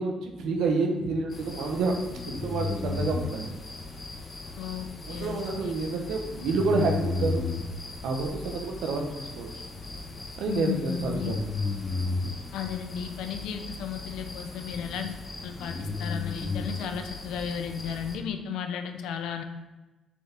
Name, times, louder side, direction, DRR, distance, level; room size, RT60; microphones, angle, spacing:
voice 1, 0.0-1.9 2.3-3.5 5.1-7.4 8.0-9.5 10.4-11.4, right 3 dB, 85° right, 2 dB, 1.0 m, -29 dB
sound 1, 1.3-18.2, left 3 dB, 40° left, 1.2 m, -35 dB
voice 2, 4.6-5.8 10.5-11.4 12.5-15.2 15.4-19.4, left 8 dB, 90° left, 7 dB, 0.6 m, -34 dB
7.1 x 4.6 x 3.5 m, 1.1 s
cardioid pair, 90°, 0 cm